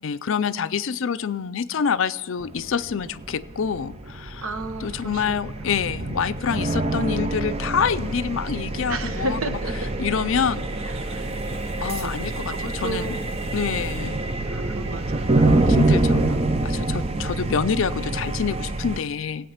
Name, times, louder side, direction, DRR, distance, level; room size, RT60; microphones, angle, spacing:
voice 1, 0.0-9.6 10.0-10.7 11.1-11.2 11.8-13.2 13.5-14.2 15.7-16.3 16.6-19.5, left 6 dB, 60° left, 14 dB, 0.4 m, -27 dB
sound 1, 2.4-19.0, right 2 dB, 25° right, 0.5 m, -26 dB
voice 2, 4.4-5.4 8.9-9.9 11.1-11.3 11.8-12.1 12.5-13.2 14.5-15.7 16.3-16.5, right 2 dB, 70° right, 9 dB, 0.9 m, -33 dB
19.0 x 8.6 x 5.7 m, 1.3 s
head